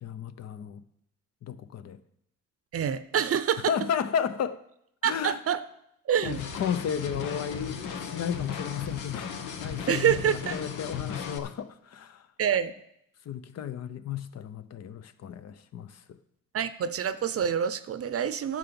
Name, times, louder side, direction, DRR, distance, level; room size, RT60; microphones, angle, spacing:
voice 1, 0.0-0.8 1.4-2.0 3.7-4.6 5.0-5.4 6.2-9.3 9.6-12.2 13.3-16.2, left 8 dB, 55° left, 0.8 m, -33 dB
voice 2, 2.7-3.7 5.0-5.6 6.1-6.4 9.9-10.7 12.4-12.7 16.5-18.6, right 8 dB, 50° right, 0.7 m, -27 dB
sound 1, 6.2-11.4, left 6 dB, 90° left, 1.2 m, -36 dB
11.0 x 6.2 x 7.0 m
cardioid pair, 90°, 30 cm